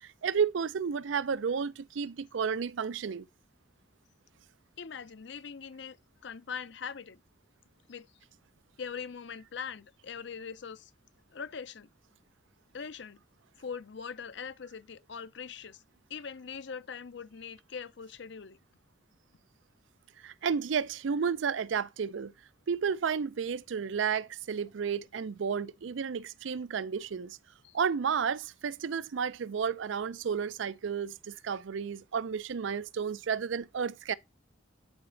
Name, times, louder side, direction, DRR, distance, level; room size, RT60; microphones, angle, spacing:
voice 1, 0.0-3.3 20.2-22.3 22.7-27.4 27.7-34.1, right 6 dB, 70° right, 0.4 m, -32 dB
voice 2, 4.8-7.2 7.9-8.1 8.8-10.9 11.3-11.9 12.7-13.2 13.5-15.8 16.1-18.6 27.6-27.8, left 6 dB, 65° left, 0.6 m, -42 dB
8.8 x 4.3 x 3.8 m
head